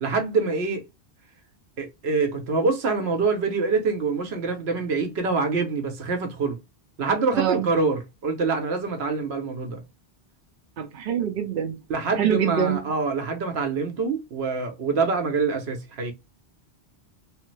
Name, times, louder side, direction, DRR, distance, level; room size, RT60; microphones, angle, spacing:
voice 1, 0.0-0.9 1.8-6.6 7.0-9.8 11.9-16.1, right 4 dB, 80° right, 1.0 m, -25 dB
voice 2, 7.3-7.7 10.8-11.8 12.2-12.8, right 9 dB, 60° right, 0.7 m, -24 dB
3.2 x 2.0 x 3.1 m
omnidirectional pair, 1.1 m